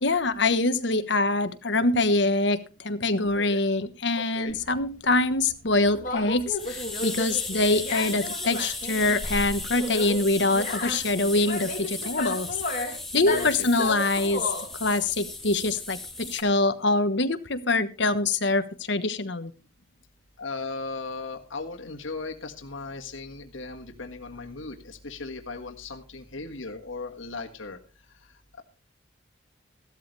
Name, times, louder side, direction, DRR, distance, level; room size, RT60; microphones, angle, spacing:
voice 1, 0.0-12.5 12.9-14.4 14.7-19.5, left 2 dB, 65° left, 10 dB, 1.2 m, -24 dB
voice 2, 3.2-3.6 4.1-4.6 13.2-13.7 20.4-27.8, left 3 dB, 85° left, 3 dB, 1.7 m, -37 dB
Conversation, 4.5-16.4, left 2 dB, 40° left, 3.0 m, -34 dB
sound 1, 6.6-16.4, left 2 dB, ahead, 1.8 m, -36 dB
15.5 x 12.5 x 3.3 m, 0.32 s
head